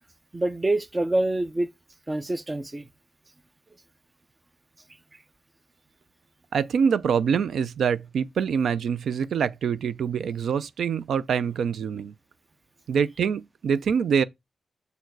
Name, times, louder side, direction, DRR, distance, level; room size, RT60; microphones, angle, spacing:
voice 1, 0.3-1.7 2.1-2.9, right 2 dB, 20° right, 0.5 m, -26 dB
voice 2, 6.5-12.1 12.9-14.2, right 7 dB, 90° right, 0.4 m, -25 dB
6.8 x 4.6 x 4.5 m
wide cardioid pair, 140°, 0 cm